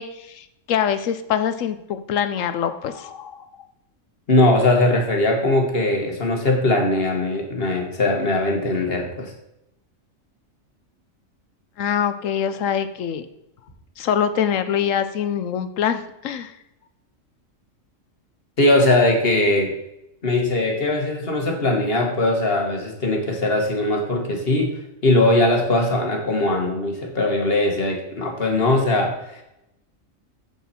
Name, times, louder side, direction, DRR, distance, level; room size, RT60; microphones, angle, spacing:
voice 1, 0.0-3.5 11.8-13.2 14.0-16.5, left 8 dB, 75° left, 11 dB, 1.1 m, -24 dB
voice 2, 4.3-9.3 18.6-19.7 20.2-24.7 25.0-29.4, left 2 dB, 45° left, 2 dB, 1.8 m, -20 dB
7.7 x 7.1 x 4.3 m, 0.85 s
omnidirectional pair, 1.4 m